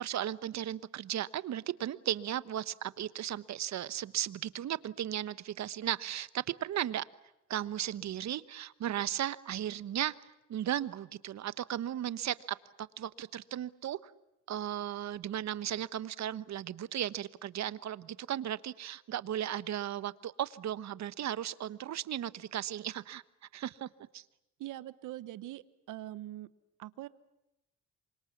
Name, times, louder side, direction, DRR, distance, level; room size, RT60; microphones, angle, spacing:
voice 1, 0.0-7.0 7.5-10.1 10.5-14.1 14.5-23.2 23.5-23.9 24.1-24.2, right 11 dB, 65° right, 16 dB, 1.1 m, -36 dB
voice 2, 24.6-26.5 26.8-27.1, right 15 dB, 85° right, 16 dB, 1.1 m, -43 dB
28.0 x 25.0 x 7.2 m, 0.91 s
cardioid pair, 90°, 30 cm